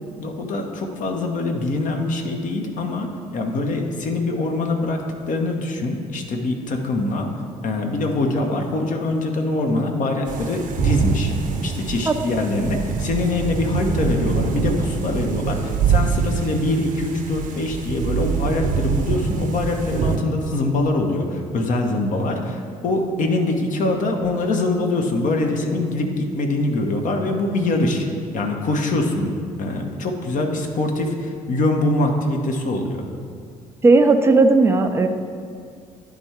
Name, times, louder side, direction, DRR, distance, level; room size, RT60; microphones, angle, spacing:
voice 1, 0.2-7.3 7.6-11.3 11.6-28.1 28.3-33.0, left 2 dB, 45° left, 3 dB, 0.9 m, -23 dB
sound 1, 10.3-20.2, right 6 dB, 45° right, 0.8 m, -24 dB
voice 2, 33.8-35.1, right 3 dB, 15° right, 6 dB, 0.5 m, -15 dB
10.0 x 3.5 x 4.5 m, 2.2 s
figure-of-eight pair, 50°, 19 cm